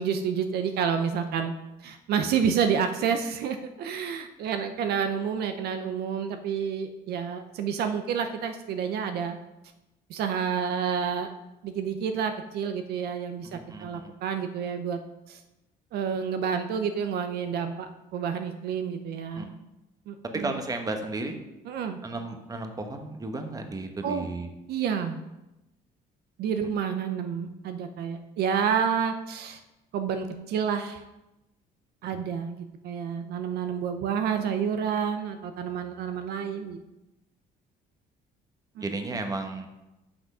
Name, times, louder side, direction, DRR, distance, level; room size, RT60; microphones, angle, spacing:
voice 1, 0.0-1.5 1.8-9.4 10.1-11.3 11.6-15.0 15.3-15.4 15.9-19.5 20.1-20.6 21.7-22.0 24.0-24.3 24.7-25.2 26.4-29.6 29.9-31.0 32.0-36.8 38.8-38.9, right 7 dB, 70° right, 7 dB, 0.7 m, -29 dB
voice 2, 13.4-14.1 19.4-19.5 20.3-21.4 22.0-24.5 38.8-39.7, right 2 dB, 20° right, 5 dB, 1.0 m, -34 dB
6.2 x 6.0 x 5.4 m, 0.96 s
cardioid pair, 110°, 17 cm